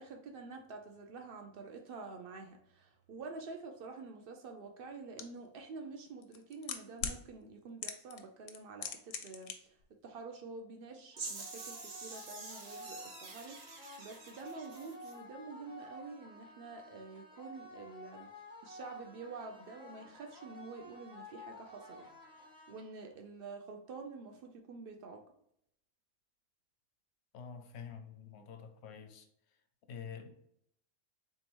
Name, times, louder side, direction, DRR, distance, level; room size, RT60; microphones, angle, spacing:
voice 1, 0.0-9.8 10.0-18.3 18.6-22.2 22.7-25.2, right 4 dB, 80° right, 0.5 m, -48 dB
sound 1, 5.2-5.3 6.2-7.2 7.8-8.2 8.5-9.5 9.8-9.9, left 8 dB, 90° left, 1.1 m, -38 dB
sound 2, 11.1-23.1, left 1 dB, 5° right, 0.7 m, -52 dB
sound 3, 11.2-15.2, right 3 dB, 50° right, 1.0 m, -47 dB
voice 2, 27.3-29.3 29.9-30.3, left 6 dB, 60° left, 0.7 m, -47 dB
3.8 x 3.7 x 2.9 m
omnidirectional pair, 1.5 m